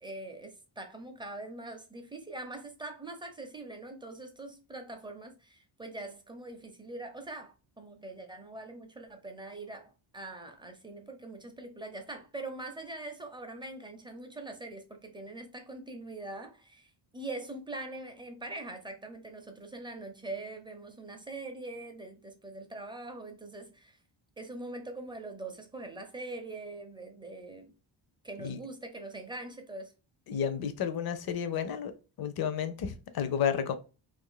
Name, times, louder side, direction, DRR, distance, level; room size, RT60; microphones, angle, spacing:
voice 1, 0.0-24.0 24.4-27.7 28.2-29.9, right 2 dB, 10° right, 0.4 m, -43 dB
voice 2, 30.3-31.9 32.2-33.8, left 8 dB, 50° left, 0.5 m, -31 dB
2.6 x 2.5 x 3.7 m
cardioid pair, 135°, 49 cm